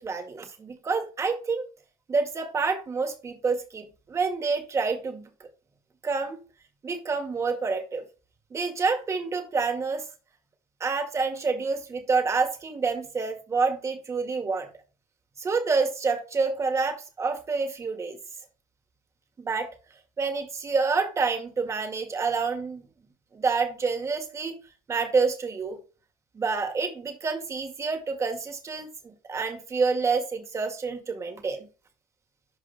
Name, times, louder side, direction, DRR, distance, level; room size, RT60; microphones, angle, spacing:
voice 1, 0.0-1.7 2.1-5.2 6.0-6.4 6.8-8.0 8.5-10.0 10.8-14.7 15.4-18.2 19.4-19.7 20.2-22.9 23.3-24.5 24.9-25.8 26.3-31.7, right 4 dB, 25° right, 1.9 m, -28 dB
11.0 x 5.4 x 2.2 m
cardioid pair, 130°, 12 cm